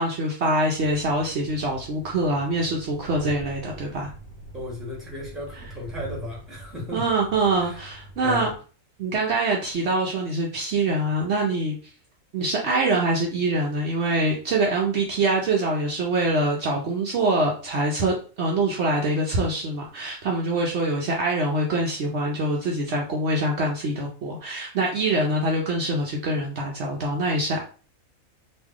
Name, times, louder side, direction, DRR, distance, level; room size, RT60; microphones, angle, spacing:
voice 1, 0.0-4.1 6.9-8.5 9.0-11.8 12.3-27.6, right 2 dB, 60° right, -1 dB, 0.9 m, -24 dB
Train, 0.7-8.6, right 2 dB, 45° left, 1.4 m, -43 dB
voice 2, 4.5-7.0 7.6-7.9 8.2-8.5, left 2 dB, ahead, -4 dB, 1.4 m, -35 dB
3.1 x 2.6 x 3.6 m, 0.38 s
omnidirectional pair, 1.4 m